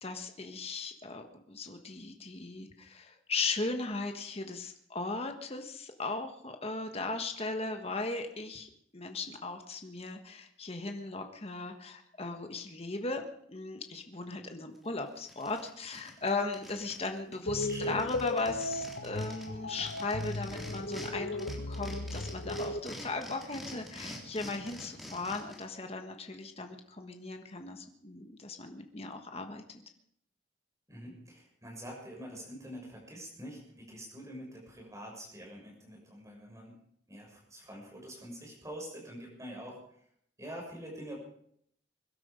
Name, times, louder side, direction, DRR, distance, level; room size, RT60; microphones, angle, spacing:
voice 1, 0.0-13.2 13.5-29.6, left 3 dB, 35° left, 5 dB, 1.4 m, -37 dB
sound 1, 14.7-14.8 15.2-17.1 17.3-17.4 17.6-21.1 21.4-25.6, equal, ahead, 3.6 m, -46 dB
sound 2, 17.5-22.8, left 2 dB, 65° left, 0.9 m, -36 dB
voice 2, 17.5-18.0 30.9-36.7 37.1-39.8 40.4-41.2, equal, 15° right, -1 dB, 6.7 m, -45 dB
22.0 x 12.0 x 5.2 m, 0.68 s
head